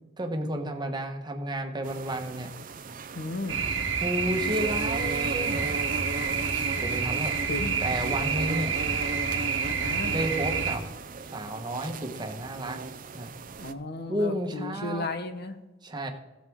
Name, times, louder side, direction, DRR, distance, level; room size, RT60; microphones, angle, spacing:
voice 1, 0.2-2.5 4.0-5.8 6.3-7.3 7.8-8.7 10.1-10.8 11.2-12.8 13.1-13.3 14.1-15.1 15.8-16.1, right 1 dB, 25° right, 3 dB, 1.3 m, -32 dB
sound 1, 1.8-13.7, right 3 dB, 45° right, 0.6 m, -37 dB
voice 2, 3.1-3.6 7.5-7.8 9.7-10.2 13.6-15.6, left 2 dB, 55° left, 9 dB, 1.0 m, -34 dB
sound 2, 3.5-10.8, right 5 dB, 75° right, 1.5 m, -29 dB
17.0 x 7.7 x 3.7 m, 1.1 s
head